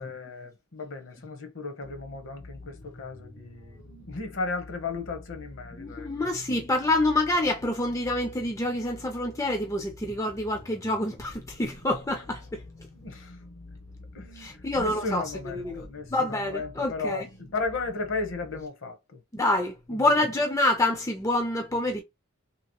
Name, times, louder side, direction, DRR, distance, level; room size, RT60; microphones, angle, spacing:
voice 1, 0.0-3.8 4.1-6.1 12.9-13.4 14.1-14.5 14.8-19.2, left 3 dB, 60° left, 0.8 m, -35 dB
sound 1, 1.8-18.7, left 2 dB, 90° left, 0.9 m, -48 dB
voice 2, 5.8-12.6 14.3-15.8 16.1-17.3 19.3-22.0, left 1 dB, 15° left, 0.4 m, -27 dB
2.8 x 2.8 x 2.9 m
head